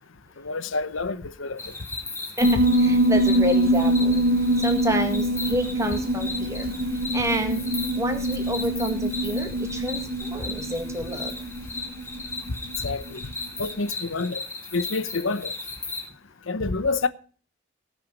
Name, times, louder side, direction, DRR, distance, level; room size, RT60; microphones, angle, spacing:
voice 1, 0.4-1.6 12.8-13.2 13.6-14.4 14.7-15.5 16.5-17.1, left 3 dB, 90° left, 0.9 m, -28 dB
sound 1, 1.6-16.1, left 3 dB, 15° left, 1.7 m, -37 dB
voice 2, 2.4-4.2 4.6-6.7 7.1-7.6 8.0-11.3, equal, 15° right, 1.8 m, -29 dB
Piano, 2.4-13.1, right 1 dB, 50° right, 1.1 m, -24 dB
18.5 x 6.4 x 5.3 m
head